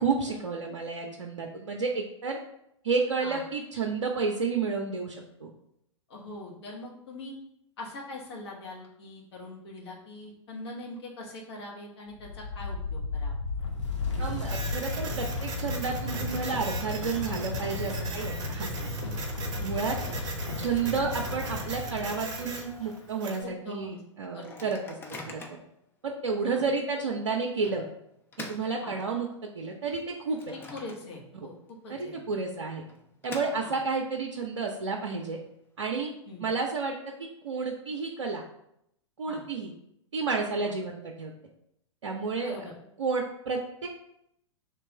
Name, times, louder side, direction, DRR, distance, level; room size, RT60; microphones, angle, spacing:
voice 1, 0.0-2.4 2.8-5.5 14.2-19.0 19.6-20.0 20.6-25.0 25.3-25.4 26.0-27.8 28.4-30.5 31.9-32.8 33.2-35.4 35.8-36.1 36.4-38.4 39.2-39.7 40.1-41.3 42.0-42.7 43.0-43.9, right 4 dB, 70° right, 0 dB, 0.5 m, -31 dB
voice 2, 6.1-7.4 7.8-13.4 19.9-20.2 23.4-24.0 24.3-24.7 26.5-26.6 28.8-28.9 30.5-32.2 33.6-33.8 36.3-36.4 39.3-39.4 40.6-40.7 42.3-42.7, left 2 dB, 55° left, -2 dB, 1.2 m, -42 dB
sound 1, 12.1-22.9, left 3 dB, 70° left, 0.8 m, -34 dB
Printer, 14.4-23.4, right 4 dB, 25° right, 0.8 m, -40 dB
Microwave oven, 18.7-21.8 22.2-22.3 22.6-22.9 23.4-23.5 24.2-25.8 26.4-26.5 27.6-29.5 29.9-31.4 31.7-31.8 32.7-34.1, left 2 dB, 15° left, 0.4 m, -47 dB
3.3 x 2.9 x 4.5 m, 0.77 s
figure-of-eight pair, 100°, 16 cm